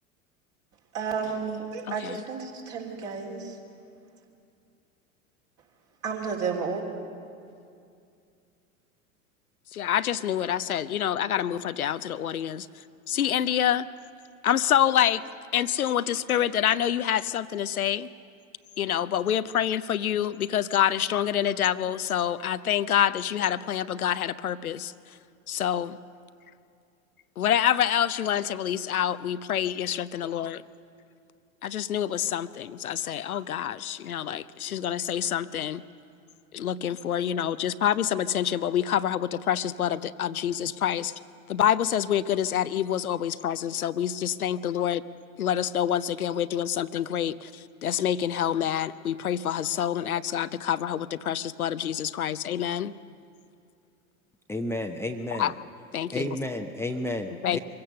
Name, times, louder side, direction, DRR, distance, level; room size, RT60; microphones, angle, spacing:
voice 1, 0.9-3.5 6.0-6.8, right 5 dB, 45° right, 1 dB, 3.5 m, -32 dB
voice 2, 1.9-2.2 9.7-12.7 13.1-13.9 14.4-15.2 15.5-18.1 18.8-24.9 25.5-26.0 27.4-30.6 31.6-35.8 36.5-41.1 41.5-45.0 45.4-52.9 55.4-55.5 55.9-56.3 57.4-57.6, left 10 dB, 85° left, 14 dB, 0.6 m, -27 dB
voice 3, 54.5-55.5 56.1-57.6, left 1 dB, 5° left, 3 dB, 0.8 m, -31 dB
24.0 x 16.5 x 6.7 m, 2.4 s
figure-of-eight pair, 80°, 42 cm